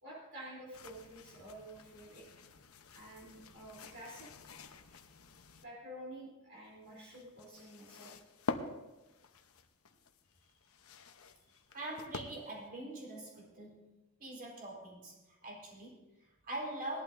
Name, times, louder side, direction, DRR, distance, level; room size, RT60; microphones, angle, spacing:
voice 1, 0.0-2.3 2.9-4.3 5.6-8.2, right 1 dB, 60° right, -5 dB, 3.4 m, -50 dB
sound 1, 0.7-5.6 6.6-12.7, left 4 dB, 70° left, 0.9 m, -47 dB
voice 2, 11.7-13.9 14.2-17.0, right 1 dB, 45° right, -3 dB, 4.0 m, -44 dB
19.5 x 11.5 x 2.6 m, 1.1 s
head